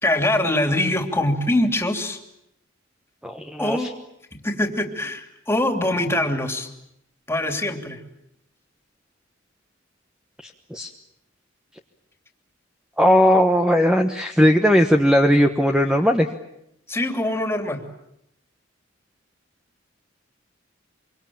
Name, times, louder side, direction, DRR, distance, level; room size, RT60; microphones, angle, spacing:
voice 1, 0.0-2.2 3.6-3.9 4.3-6.7 7.3-8.0 16.9-17.8, left 1 dB, 15° left, 5 dB, 3.0 m, -23 dB
voice 2, 3.2-3.9 10.7-10.9 13.0-16.3, equal, 5° right, 5 dB, 1.2 m, -18 dB
25.5 x 24.0 x 8.8 m, 0.78 s
head